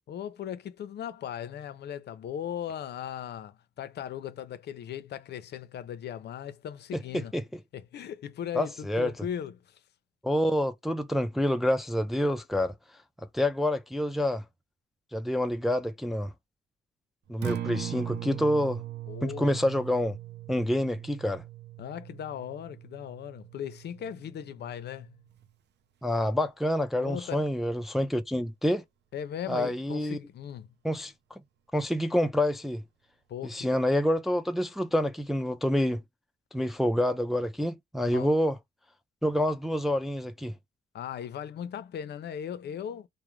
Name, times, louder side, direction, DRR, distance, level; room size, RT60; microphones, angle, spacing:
voice 1, 0.1-7.3 7.7-9.8 19.1-19.7 21.8-25.2 27.0-27.5 29.1-30.7 33.3-33.7 38.0-38.3 40.9-43.1, left 9 dB, 65° left, 0.5 m, -38 dB
voice 2, 6.9-7.4 8.5-9.1 10.2-12.7 13.3-14.4 15.1-16.3 17.3-18.8 19.2-20.2 20.5-21.4 26.0-28.8 29.5-30.2 30.8-31.1 31.7-32.8 33.4-36.0 36.5-38.6 39.2-40.5, left 1 dB, ahead, 0.3 m, -27 dB
Acoustic guitar, 17.3-25.5, right 12 dB, 65° right, 0.5 m, -40 dB
2.4 x 2.0 x 3.0 m
cardioid pair, 85°, 19 cm